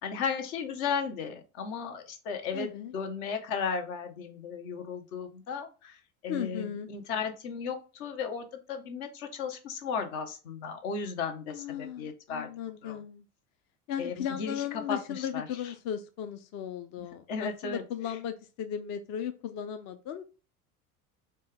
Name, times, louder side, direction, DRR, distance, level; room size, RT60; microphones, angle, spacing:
voice 1, 0.0-12.5 12.8-13.0 14.0-15.7 17.3-17.8, left 5 dB, 65° left, 1.0 m, -35 dB
voice 2, 2.5-2.9 6.3-6.9 11.5-13.2 13.9-20.2, left 9 dB, 40° left, 0.5 m, -36 dB
4.3 x 2.2 x 3.4 m
hypercardioid pair, 70°, 46 cm